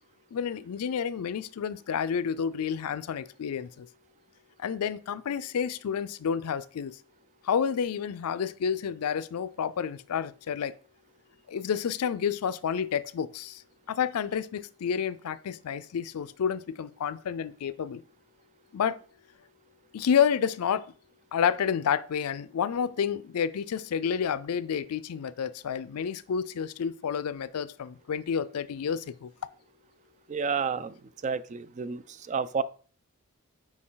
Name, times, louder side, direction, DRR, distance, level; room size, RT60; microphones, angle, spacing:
voice 1, 0.3-3.9 4.6-7.0 7.4-10.7 11.5-13.6 13.9-18.0 18.7-19.0 19.9-20.8 21.3-29.3, left 7 dB, 80° left, 0.4 m, -30 dB
voice 2, 30.3-30.9 31.2-32.0 32.3-32.6, right 5 dB, 30° right, 0.3 m, -30 dB
6.3 x 4.7 x 3.8 m
head